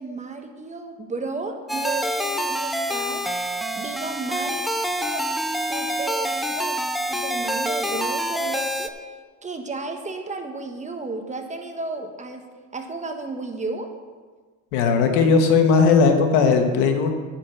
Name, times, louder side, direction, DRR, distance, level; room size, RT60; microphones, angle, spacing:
voice 1, 0.0-3.2 3.5-4.6 5.0-5.3 5.7-6.8 7.1-8.9 9.4-12.4 12.7-13.9, right 3 dB, 20° right, 4 dB, 1.4 m, -33 dB
sound 1, 1.7-8.9, equal, ahead, 0.6 m, -26 dB
voice 2, 14.7-17.1, left 5 dB, 70° left, 5 dB, 1.5 m, -17 dB
9.7 x 6.1 x 7.4 m, 1.4 s
supercardioid pair, 100°, 40 cm